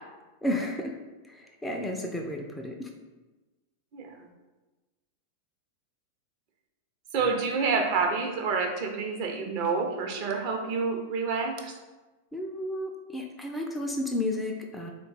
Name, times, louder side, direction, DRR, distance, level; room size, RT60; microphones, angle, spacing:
voice 1, 0.4-1.0 1.3-2.9 7.2-7.3 12.3-14.9, left 1 dB, 10° left, 2 dB, 0.4 m, -32 dB
voice 2, 7.1-11.5, right 4 dB, 45° right, 2 dB, 0.6 m, -28 dB
3.7 x 2.2 x 4.0 m, 1.2 s
figure-of-eight pair, 90°, 0 cm